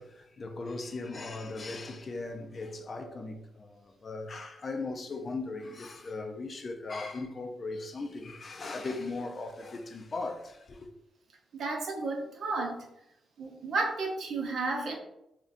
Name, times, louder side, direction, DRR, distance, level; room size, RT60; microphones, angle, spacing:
voice 1, 0.0-10.9, left 3 dB, 45° left, 0.4 m, -38 dB
voice 2, 11.5-12.7 13.4-15.0, right 3 dB, 75° right, 0.7 m, -32 dB
3.7 x 2.2 x 2.5 m
cardioid pair, 85°, 0 cm